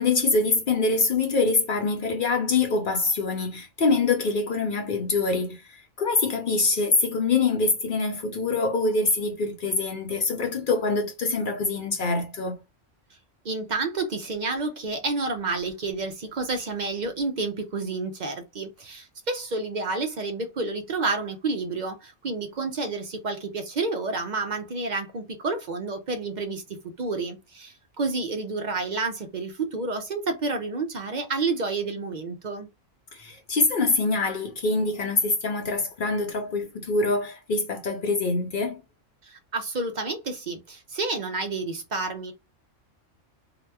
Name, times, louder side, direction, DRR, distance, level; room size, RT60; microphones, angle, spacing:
voice 1, 0.0-12.6 33.1-38.8, left 3 dB, 55° left, 0.6 m, -25 dB
voice 2, 13.4-32.7 39.2-42.3, right 3 dB, 50° right, 0.5 m, -30 dB
2.8 x 2.2 x 3.3 m
omnidirectional pair, 1.3 m